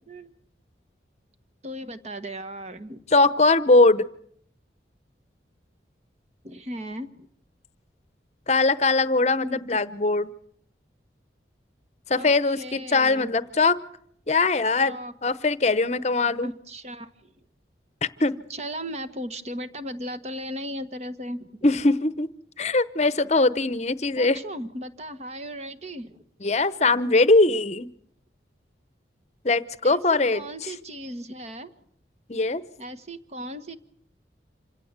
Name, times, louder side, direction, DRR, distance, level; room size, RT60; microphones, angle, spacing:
voice 1, 1.6-3.0 6.4-7.3 9.4-9.6 12.1-12.3 12.6-13.3 14.8-15.1 16.4-17.3 18.5-21.6 24.2-26.2 29.8-31.7 32.8-33.8, equal, 35° right, 10 dB, 1.3 m, -36 dB
voice 2, 3.1-4.1 8.5-10.3 12.1-13.8 14.3-16.5 18.0-18.4 21.6-22.3 22.6-24.4 26.4-27.9 29.4-30.4 32.3-32.6, left 3 dB, 35° left, 15 dB, 0.8 m, -21 dB
26.5 x 16.5 x 8.2 m, 0.65 s
head